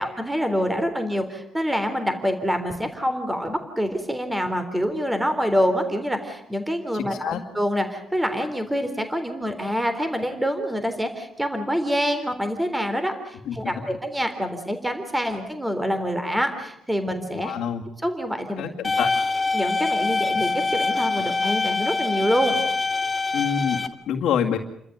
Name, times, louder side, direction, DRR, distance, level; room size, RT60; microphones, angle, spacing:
voice 1, 0.0-17.5 18.0-18.7 19.5-22.6, equal, 10° right, 7 dB, 3.5 m, -26 dB
voice 2, 6.9-7.4 13.5-13.8 17.3-17.8 18.6-19.1 23.3-24.6, left 8 dB, 80° left, -4 dB, 2.2 m, -27 dB
sound 1, 18.8-23.9, left 3 dB, 20° left, 1.9 m, -24 dB
29.5 x 13.5 x 9.4 m, 0.78 s
cardioid pair, 90°, 0 cm